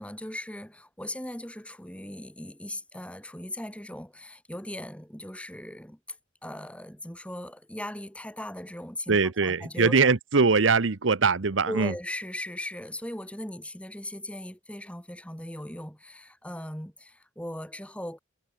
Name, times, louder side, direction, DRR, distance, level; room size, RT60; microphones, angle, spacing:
voice 1, 0.0-6.2 6.4-9.9 11.7-18.2, left 1 dB, 5° left, 4.9 m, -38 dB
voice 2, 9.1-11.9, right 4 dB, 85° right, 0.9 m, -22 dB
head